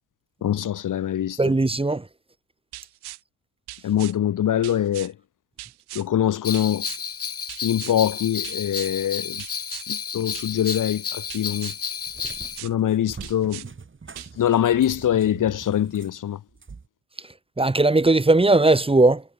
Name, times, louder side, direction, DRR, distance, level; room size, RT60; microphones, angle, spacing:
voice 1, 0.4-1.5 3.8-5.1 5.9-6.8 7.6-9.4 9.9-11.7 12.6-13.6 14.4-16.4, left 10 dB, 55° left, 1.2 m, -23 dB
voice 2, 1.4-2.0 17.6-19.2, right 2 dB, 15° right, 2.0 m, -18 dB
sound 1, 2.7-3.2 3.7-4.1 4.6-5.1 5.6-6.1 6.5-7.0 7.5-8.0 8.4-8.9 9.4-9.9 10.3-10.8 11.3-11.8 12.2-12.7 13.2-13.7 14.1-14.3, right 17 dB, 90° right, 3.7 m, -39 dB
Bell, 6.4-12.6, left 7 dB, 35° left, 1.6 m, -32 dB
Cat, 11.7-16.9, right 4 dB, 30° right, 5.0 m, -43 dB
cardioid pair, 80°, 38 cm